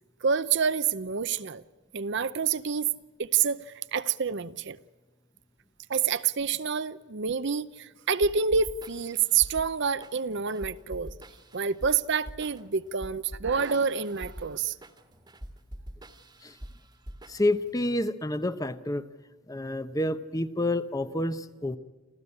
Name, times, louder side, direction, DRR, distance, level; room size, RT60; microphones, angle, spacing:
voice 1, 0.2-1.6 1.9-2.9 3.2-4.8 5.9-11.1 11.5-14.7, right 6 dB, 55° right, 0.6 m, -27 dB
sound 1, 8.2-17.8, equal, 20° right, 1.5 m, -45 dB
voice 2, 17.3-19.0 19.5-21.8, left 1 dB, 15° left, 0.8 m, -29 dB
27.5 x 14.5 x 9.8 m
head